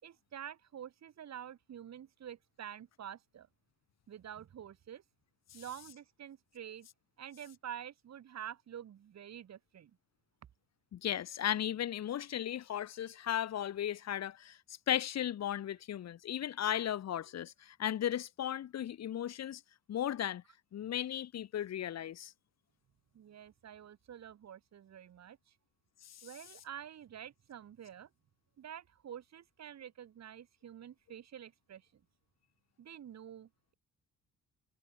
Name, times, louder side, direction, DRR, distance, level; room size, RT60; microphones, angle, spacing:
voice 1, 0.0-3.5 4.1-5.0 5.5-6.9 7.2-10.0 23.1-25.6 26.2-28.1 28.6-32.0 32.8-33.7, right 9 dB, 60° right, 4.9 m, -48 dB
voice 2, 10.9-19.6 19.9-20.4 20.7-22.3 26.0-26.3, left 10 dB, 60° left, 1.4 m, -36 dB
cardioid pair, 90°, 30 cm